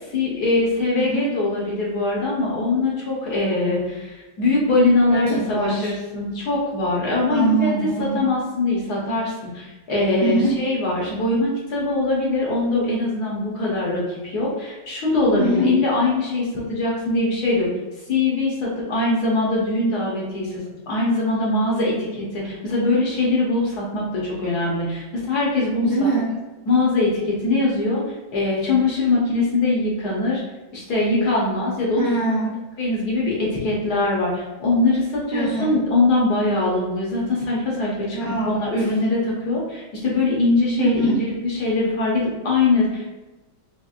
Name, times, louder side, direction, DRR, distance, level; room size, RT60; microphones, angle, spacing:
voice 1, 0.1-17.7 18.1-26.1 26.7-28.0 28.3-30.4 30.7-32.2 32.8-38.2 38.5-43.0, left 2 dB, 60° left, -5 dB, 1.3 m, -22 dB
voice 2, 5.1-5.9 7.3-8.2 10.2-10.6 15.4-15.7 25.8-26.4 32.0-32.6 35.3-35.7 38.1-38.6 40.8-41.2, right 2 dB, 60° right, -7 dB, 0.7 m, -23 dB
4.3 x 3.0 x 2.4 m, 1.1 s
omnidirectional pair, 2.2 m